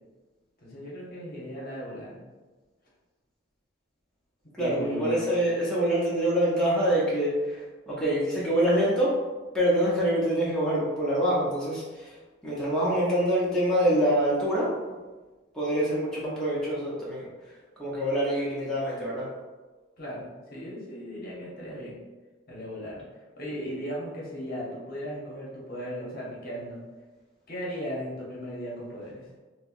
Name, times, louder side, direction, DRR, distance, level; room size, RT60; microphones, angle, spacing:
voice 1, 0.6-2.2 4.6-5.3 20.0-22.0 22.5-23.0 23.4-26.8 27.5-29.3, equal, 50° left, -5 dB, 1.0 m, -37 dB
voice 2, 4.5-9.2 9.5-12.2 12.4-14.7 15.5-17.3 17.8-19.3, right 1 dB, 5° left, -8 dB, 0.6 m, -25 dB
4.2 x 2.1 x 2.5 m, 1.3 s
head